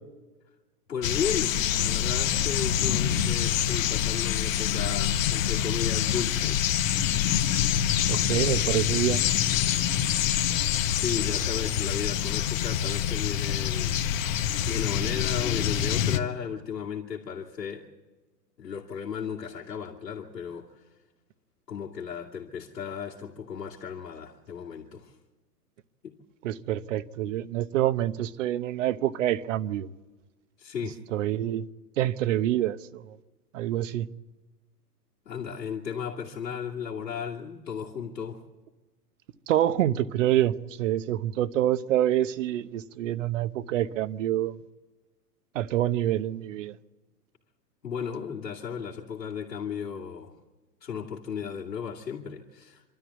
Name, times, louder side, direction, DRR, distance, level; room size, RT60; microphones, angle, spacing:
voice 1, 0.9-6.6 10.7-14.0 14.3-17.9 18.6-20.8 21.7-25.2 26.0-26.1 30.6-31.0 35.3-38.4 47.8-50.4 50.8-52.8, left 7 dB, 85° left, 2.6 m, -35 dB
sound 1, 1.0-16.2, left 10 dB, 55° left, 1.4 m, -26 dB
voice 2, 8.1-9.3 26.4-29.9 31.1-31.6 32.0-33.2 33.5-34.1 39.5-44.6 45.5-46.8, right 12 dB, 50° right, 1.0 m, -26 dB
26.5 x 13.0 x 8.2 m
hypercardioid pair, 130°, 48 cm